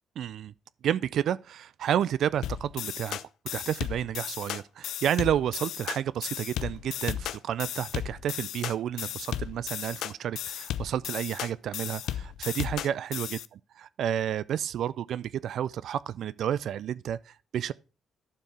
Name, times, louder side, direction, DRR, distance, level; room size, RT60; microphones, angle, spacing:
voice 1, 0.2-0.5 0.8-3.2 3.5-13.4 13.8-17.7, right 10 dB, 70° right, 0.3 m, -30 dB
sound 1, 2.4-13.5, left 11 dB, 80° left, 0.4 m, -35 dB
12.0 x 4.6 x 4.9 m
cardioid pair, 90°, 0 cm